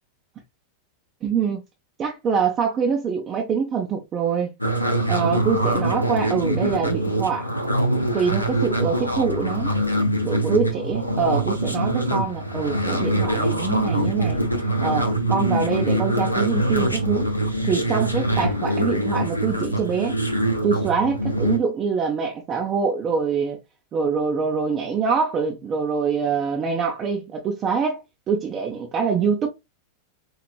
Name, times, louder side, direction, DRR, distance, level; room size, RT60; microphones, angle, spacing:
voice 1, 1.2-1.6 2.0-4.5 5.1-7.5 8.1-9.7 10.2-14.4 14.8-17.3 17.6-20.2 20.6-23.6 23.9-29.5, right 6 dB, 30° right, 0.7 m, -24 dB
sound 1, 4.6-21.6, right 1 dB, 85° left, 0.7 m, -24 dB
4.7 x 2.9 x 2.2 m
figure-of-eight pair, 90°, 0 cm